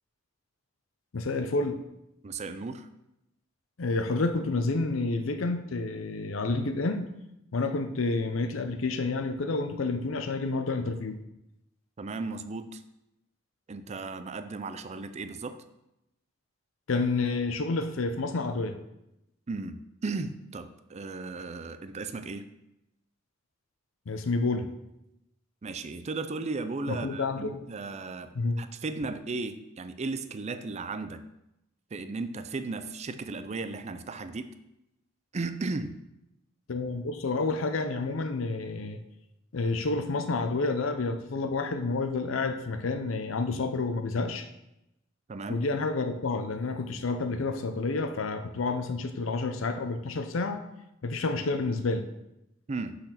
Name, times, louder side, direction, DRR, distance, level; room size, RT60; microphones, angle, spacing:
voice 1, 1.1-1.8 3.8-7.1 7.5-11.2 16.9-18.7 24.1-24.7 26.9-27.6 28.3-28.6 36.7-39.0 39.5-44.5 45.5-50.6 51.0-52.0, left 3 dB, 85° left, 8 dB, 0.6 m, -29 dB
voice 2, 2.2-2.9 12.0-12.8 13.7-15.6 19.5-22.5 25.6-31.2 31.9-34.5 35.3-36.0 45.3-45.6 52.7-53.0, right 3 dB, 35° right, 10 dB, 0.4 m, -35 dB
6.5 x 4.2 x 5.8 m, 0.88 s
head